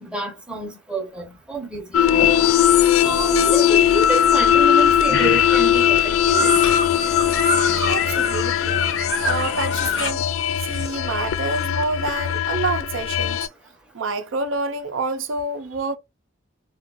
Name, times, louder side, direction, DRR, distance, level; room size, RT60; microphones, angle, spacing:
voice 1, 0.0-2.4 3.0-6.6, right 2 dB, 5° right, 0.6 m, -28 dB
sound 1, 1.9-13.5, left 10 dB, 90° left, 0.3 m, -19 dB
sound 2, 2.1-10.1, left 3 dB, 65° left, 0.7 m, -27 dB
voice 2, 7.9-8.8 9.2-10.3 10.6-13.4 13.9-16.0, right 3 dB, 75° right, 0.5 m, -27 dB
2.5 x 2.3 x 3.6 m
head